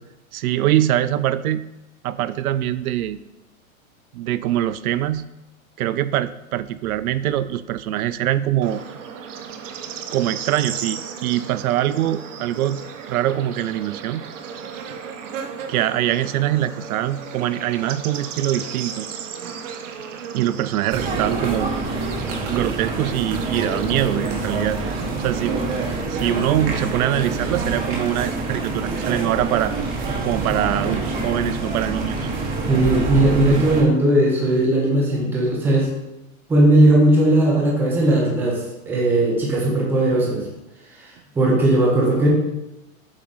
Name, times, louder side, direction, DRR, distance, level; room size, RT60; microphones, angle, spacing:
voice 1, 0.3-1.6 2.0-3.2 4.1-5.2 5.8-8.8 10.1-12.8 13.1-14.2 15.7-19.1 20.3-21.7 22.5-24.8 25.2-25.7 26.1-29.7 30.2-32.3, right 12 dB, 80° right, 14 dB, 0.5 m, -23 dB
Bird / Insect, 8.6-26.0, right 7 dB, 60° right, 0.9 m, -35 dB
sound 1, 20.9-33.8, right 3 dB, 35° right, 1.2 m, -26 dB
voice 2, 32.7-35.9 36.5-40.5 41.3-42.3, right 1 dB, 5° right, -3 dB, 0.7 m, -17 dB
7.5 x 4.7 x 4.0 m, 0.94 s
supercardioid pair, 175°, 43 cm